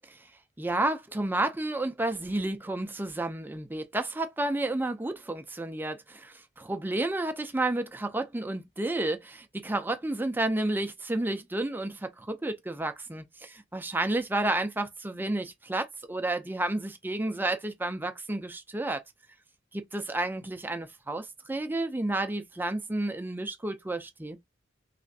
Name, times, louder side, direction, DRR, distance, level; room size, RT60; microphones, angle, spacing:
voice 1, 0.6-19.0 19.7-24.4, right 2 dB, 10° right, 0.5 m, -31 dB
3.3 x 3.0 x 2.7 m
head